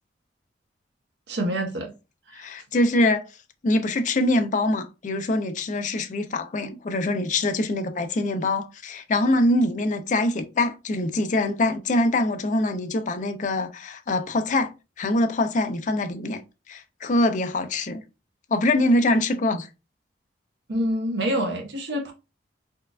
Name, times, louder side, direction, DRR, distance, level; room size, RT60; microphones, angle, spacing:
voice 1, 1.3-1.9 2.3-2.5 20.7-22.1, equal, 65° right, 0.7 m, -27 dB
voice 2, 2.3-3.3 3.6-14.7 15.0-16.4 16.7-18.0 18.5-19.7, left 1 dB, 45° left, 0.4 m, -24 dB
4.3 x 2.4 x 2.2 m
head